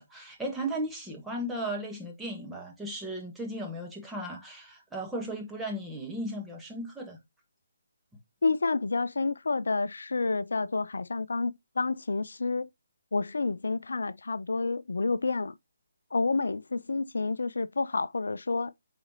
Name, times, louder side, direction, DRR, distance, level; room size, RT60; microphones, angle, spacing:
voice 1, 0.0-7.2, right 1 dB, 5° right, 1.5 m, -36 dB
voice 2, 8.4-12.7 13.1-15.6 16.1-18.7, left 3 dB, 75° left, 0.4 m, -29 dB
8.5 x 4.1 x 3.0 m
figure-of-eight pair, 150°, 0 cm